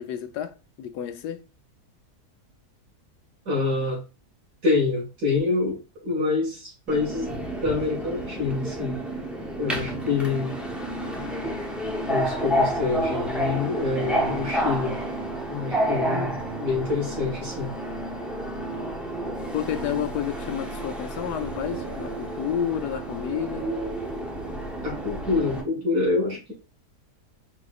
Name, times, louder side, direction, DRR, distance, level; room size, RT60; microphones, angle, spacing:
voice 1, 0.0-1.4 15.8-16.4 19.5-23.7, left 10 dB, 85° left, 1.2 m, -31 dB
voice 2, 3.5-4.0 4.6-9.0 9.6-10.6 12.1-14.9 15.5-17.7 24.8-26.5, left 3 dB, 80° right, 2.5 m, -26 dB
Subway metro underground, 6.9-25.6, right 1 dB, ahead, 0.4 m, -30 dB
4.8 x 4.2 x 2.5 m
omnidirectional pair, 1.7 m